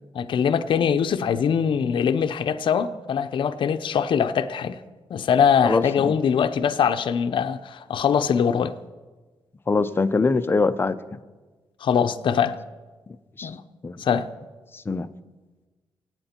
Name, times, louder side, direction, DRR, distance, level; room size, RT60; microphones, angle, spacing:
voice 1, 0.1-4.8 5.1-8.7 11.8-12.6 13.4-13.6 14.0-14.3, left 7 dB, 60° left, 0.7 m, -22 dB
voice 2, 5.6-6.2 9.7-11.0 13.4-13.5 13.8-14.0 14.7-15.1, left 3 dB, 25° left, 0.6 m, -23 dB
25.0 x 8.9 x 4.4 m
cardioid pair, 120°, 9 cm